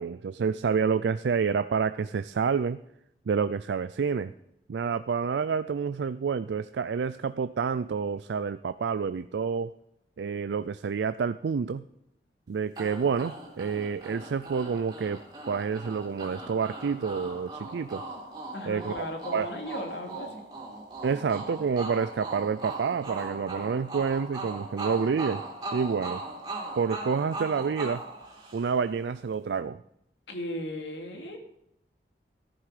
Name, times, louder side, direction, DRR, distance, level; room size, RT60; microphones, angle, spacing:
voice 1, 0.0-2.8 3.3-4.3 4.7-9.7 10.2-11.8 12.5-15.2 15.5-18.0 18.6-19.1 19.3-19.5 21.0-25.4 25.7-26.2 26.8-28.0 28.5-29.8, right 6 dB, 85° right, 13 dB, 0.4 m, -28 dB
sound 1, 12.8-28.9, right 2 dB, 25° right, 3.4 m, -39 dB
voice 2, 18.5-20.5 30.3-31.4, left 1 dB, 85° left, 3 dB, 2.5 m, -36 dB
14.0 x 11.0 x 4.9 m, 0.79 s
head